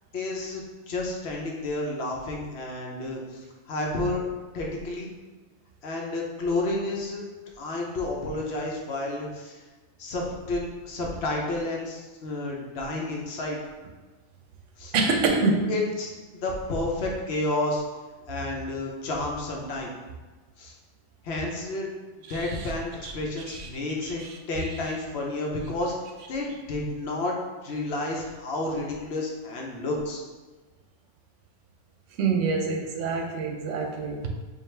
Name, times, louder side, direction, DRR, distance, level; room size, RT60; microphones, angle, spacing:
voice 1, 0.1-4.2 4.5-5.1 5.8-7.2 7.6-9.6 10.0-13.6 14.8-14.9 15.7-16.1 16.4-17.8 18.3-19.9 20.6-20.7 21.2-21.9 22.3-24.2 24.5-25.9 26.3-27.4 27.6-30.2, left 2 dB, 65° left, -1 dB, 0.9 m, -30 dB
voice 2, 14.9-15.7 22.3-22.4 23.0-23.1 24.0-24.3 32.2-34.3, right 4 dB, 85° right, 3 dB, 0.9 m, -26 dB
4.8 x 2.4 x 3.2 m, 1.3 s
omnidirectional pair, 1.2 m